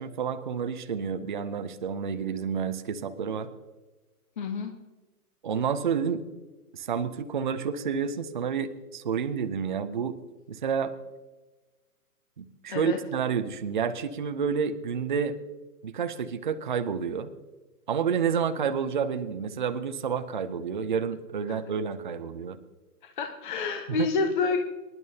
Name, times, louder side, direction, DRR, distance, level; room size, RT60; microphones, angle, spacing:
voice 1, 0.0-3.5 5.4-6.2 6.7-10.2 10.5-10.9 12.4-15.4 15.8-17.3 17.9-22.6 23.9-24.1, right 6 dB, 35° right, 9 dB, 0.6 m, -29 dB
voice 2, 4.4-4.7 12.7-13.0 23.0-24.6, left 4 dB, 35° left, 4 dB, 0.9 m, -28 dB
25.5 x 10.5 x 2.8 m, 1.2 s
hypercardioid pair, 165°, 46 cm